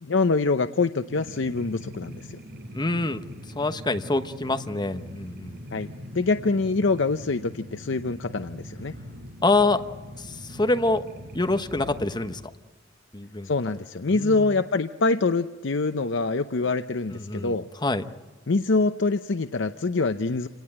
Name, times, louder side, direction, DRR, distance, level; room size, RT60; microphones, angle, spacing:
voice 1, 0.0-2.4 5.7-8.9 13.4-17.7 18.5-20.5, left 3 dB, 65° left, 10 dB, 0.7 m, -25 dB
sound 1, 1.1-12.3, equal, 55° right, 6.4 m, -42 dB
voice 2, 2.7-3.2 3.5-5.6 9.4-9.8 10.2-11.0 11.3-12.4 13.1-13.5 14.1-14.6 17.1-17.5 17.8-18.1, left 2 dB, 20° left, 8 dB, 1.1 m, -26 dB
28.0 x 18.5 x 9.1 m, 1.3 s
head